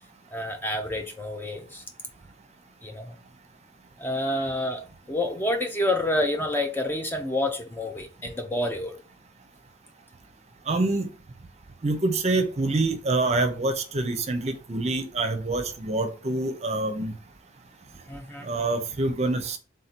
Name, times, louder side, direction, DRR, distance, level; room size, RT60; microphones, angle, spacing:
voice 1, 0.3-1.8 2.8-3.2 4.0-9.0 18.1-18.5, left 1 dB, 10° left, 0.4 m, -28 dB
voice 2, 10.7-11.1 11.8-17.1 18.4-19.6, right 2 dB, 30° right, 0.6 m, -26 dB
3.8 x 2.7 x 4.3 m
head